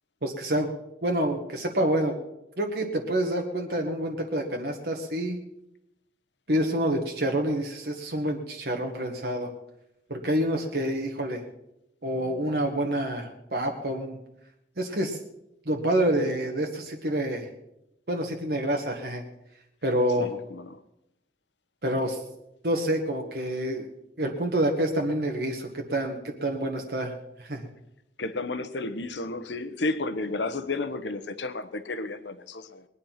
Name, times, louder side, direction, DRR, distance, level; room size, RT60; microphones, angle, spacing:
voice 1, 0.2-0.7 1.0-2.2 2.6-5.4 6.5-9.5 10.1-11.4 12.0-14.2 14.8-15.2 15.7-17.5 18.1-19.2 19.8-20.3 21.8-22.2 22.6-23.8 24.2-27.7, right 1 dB, 60° right, 2 dB, 1.5 m, -27 dB
voice 2, 20.1-20.8 28.2-32.9, left 2 dB, 85° left, 12 dB, 1.2 m, -32 dB
21.0 x 9.7 x 5.9 m, 0.86 s
head